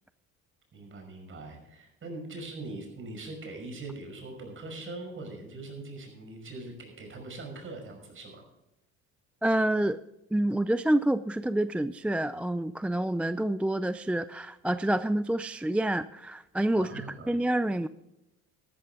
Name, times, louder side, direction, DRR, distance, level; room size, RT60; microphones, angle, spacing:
voice 1, 0.7-8.4 16.7-17.4, right 2 dB, 40° right, 3 dB, 5.7 m, -42 dB
voice 2, 9.4-10.0 10.3-17.9, right 1 dB, 5° right, 13 dB, 0.3 m, -28 dB
13.5 x 12.5 x 3.7 m, 0.94 s
cardioid pair, 100°, 30 cm